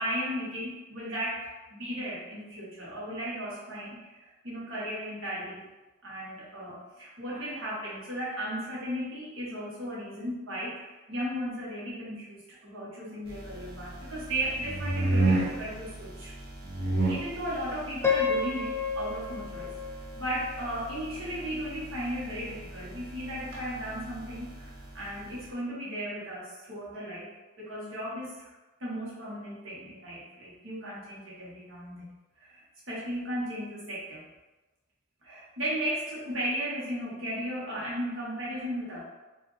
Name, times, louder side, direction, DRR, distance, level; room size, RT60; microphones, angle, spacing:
voice 1, 0.0-5.6 6.0-16.3 17.1-27.3 27.6-28.5 28.8-34.2 35.2-39.0, equal, 70° right, -7 dB, 1.5 m, -36 dB
sound 1, 13.3-25.5, right 2 dB, 50° right, 0.7 m, -34 dB
Piano, 18.0-21.0, left 5 dB, 10° left, 0.3 m, -31 dB
4.7 x 2.5 x 3.3 m, 1.1 s
head